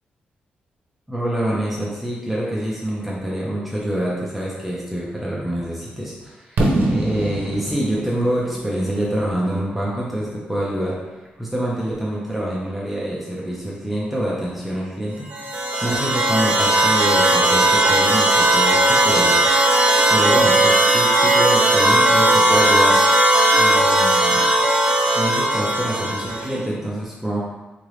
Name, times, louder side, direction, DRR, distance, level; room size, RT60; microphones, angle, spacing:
voice 1, 1.1-19.4 19.6-19.7 20.1-23.0 23.6-24.5 25.1-27.4, right 1 dB, 5° right, -6 dB, 0.8 m, -26 dB
Fireworks, 6.6-10.4, right 1 dB, 75° right, 0.8 m, -25 dB
sound 1, 15.3-26.6, right 1 dB, 40° right, 0.6 m, -17 dB
3.8 x 3.4 x 3.2 m, 1.1 s
cardioid pair, 100°, 3 cm